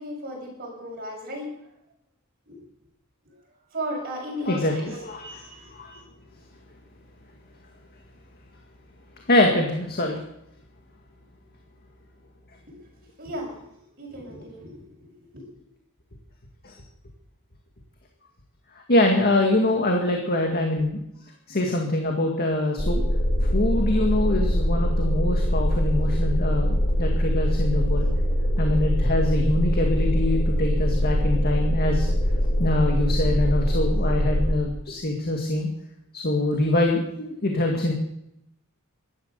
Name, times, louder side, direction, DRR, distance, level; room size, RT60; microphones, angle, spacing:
voice 1, 0.0-1.5 2.5-2.6 3.7-4.9 5.3-5.7 12.7-12.8 13.2-15.4, right 1 dB, 45° right, -2 dB, 7.5 m, -36 dB
voice 2, 4.4-6.0 9.3-10.2 16.6-16.8 18.7-21.0 21.5-23.0 23.4-28.1 28.6-32.1 32.6-35.7 36.1-37.9, left 1 dB, 45° left, 2 dB, 2.0 m, -24 dB
sound 1, 22.8-34.5, equal, 20° left, 2.9 m, -23 dB
15.5 x 12.5 x 6.8 m, 0.80 s
head